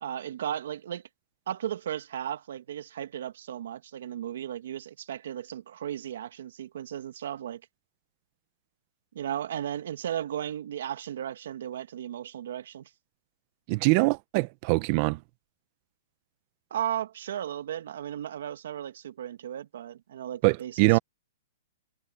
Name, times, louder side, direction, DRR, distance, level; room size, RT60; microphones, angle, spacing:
voice 1, 0.0-1.0 1.5-7.6 9.1-12.9 16.7-21.0, right 10 dB, 70° right, 2.0 m, -35 dB
voice 2, 13.7-15.2 20.4-21.0, right 24 dB, 40° right, 0.9 m, -23 dB
hypercardioid pair, 150°, 0 cm